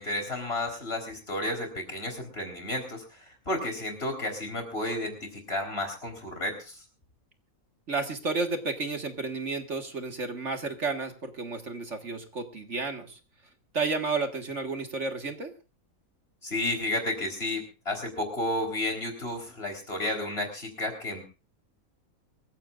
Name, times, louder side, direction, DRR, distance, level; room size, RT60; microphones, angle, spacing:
voice 1, 0.0-3.2 3.5-6.8 16.4-21.2, left 1 dB, 45° left, 4 dB, 4.4 m, -32 dB
voice 2, 7.9-13.2 13.7-15.5, right 3 dB, 55° right, 5 dB, 2.0 m, -32 dB
25.0 x 15.0 x 2.5 m, 0.31 s
omnidirectional pair, 1.5 m